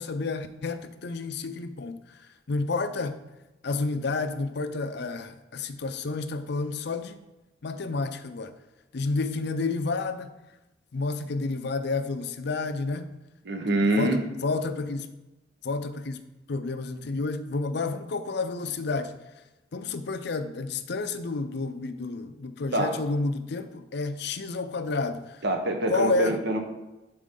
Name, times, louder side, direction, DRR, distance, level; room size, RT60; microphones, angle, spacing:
voice 1, 0.0-2.2 2.5-3.2 3.6-7.2 7.6-8.5 8.9-10.3 10.9-13.1 13.6-15.1 15.6-16.2 16.5-19.2 19.7-25.4 25.9-26.4, left 3 dB, 60° left, 10 dB, 0.5 m, -30 dB
voice 2, 13.4-14.2 22.7-22.9 25.4-26.6, right 1 dB, 60° right, 4 dB, 1.2 m, -25 dB
11.0 x 4.5 x 3.8 m, 1.0 s
head